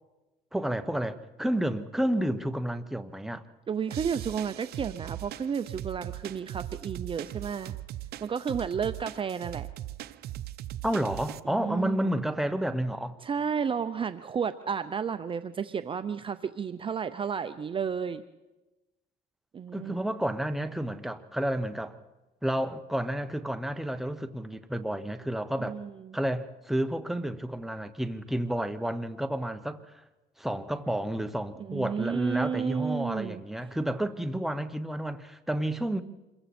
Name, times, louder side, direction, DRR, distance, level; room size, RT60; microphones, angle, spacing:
voice 1, 0.5-3.4 10.8-13.2 19.7-22.0 22.4-25.7 26.1-30.0 30.4-36.0, right 1 dB, ahead, 1.1 m, -30 dB
voice 2, 3.7-7.8 8.2-9.7 11.5-12.2 13.2-18.2 19.5-19.9 25.6-26.2 31.6-33.4, right 7 dB, 30° right, 0.7 m, -32 dB
sound 1, 3.9-11.4, right 13 dB, 70° right, 0.7 m, -39 dB
26.5 x 22.5 x 4.4 m
cardioid pair, 110°, 17 cm